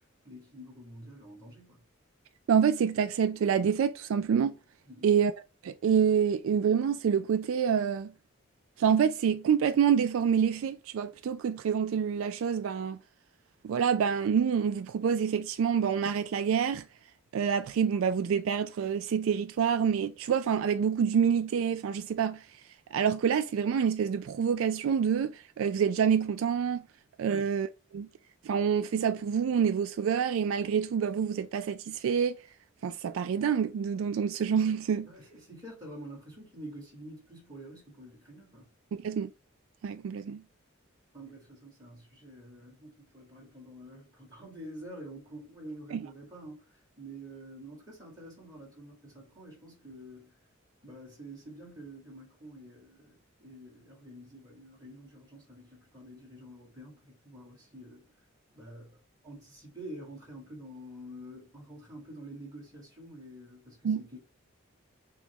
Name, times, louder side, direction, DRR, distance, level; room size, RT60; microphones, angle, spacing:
voice 1, 0.2-1.8 4.9-5.1 27.2-27.5 35.0-38.7 41.1-50.3 50.8-58.0 58.5-59.0 59.2-64.2, right 1 dB, 20° right, 2.0 m, -47 dB
voice 2, 2.5-4.5 5.0-5.3 5.6-8.1 8.8-13.0 13.6-16.8 17.3-22.4 22.9-26.8 27.2-27.7 27.9-28.1 28.4-32.4 32.8-35.1 38.9-39.3 39.8-40.4 45.9-46.1 63.8-64.0, right 7 dB, 80° right, 0.3 m, -27 dB
6.0 x 2.2 x 3.0 m
head